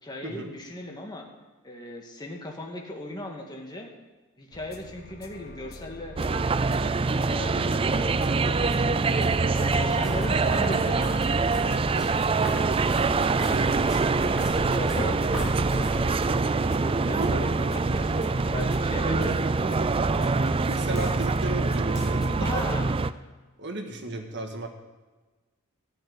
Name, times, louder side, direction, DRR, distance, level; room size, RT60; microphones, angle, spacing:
voice 1, 0.0-1.3 1.6-3.9 4.4-6.2 7.0-9.3 9.7-11.7 14.6-16.5 16.8-20.3 22.4-23.0, left 1 dB, 20° left, 1 dB, 1.9 m, -37 dB
sound 1, 4.5-22.5, left 2 dB, 45° left, 1.1 m, -44 dB
sound 2, 6.2-23.1, right 3 dB, 25° right, 0.4 m, -24 dB
sound 3, 9.0-16.3, equal, 5° right, 3.3 m, -39 dB
voice 2, 13.4-14.4 15.0-15.4 17.2-17.5 19.1-19.4 20.5-22.7 23.6-24.7, right 2 dB, 55° right, 4 dB, 1.8 m, -35 dB
13.5 x 6.8 x 9.5 m, 1.3 s
head